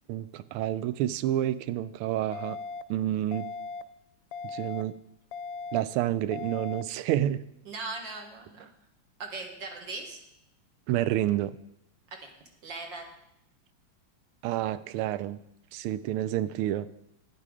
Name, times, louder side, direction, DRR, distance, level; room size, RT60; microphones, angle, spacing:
voice 1, 0.1-2.6 2.9-3.5 4.4-4.9 5.7-7.4 10.9-11.6 14.4-15.4 15.7-16.9, right 12 dB, 80° right, 15 dB, 1.4 m, -29 dB
sound 1, 2.3-2.8 3.3-3.8 4.3-4.8 5.3-5.8 6.3-6.8, left 4 dB, 75° left, 1.2 m, -38 dB
voice 2, 7.7-8.7 9.2-10.2 12.1-12.2 12.6-13.0, right 3 dB, 60° right, 2 dB, 2.0 m, -39 dB
11.0 x 9.2 x 5.0 m, 0.82 s
omnidirectional pair, 2.4 m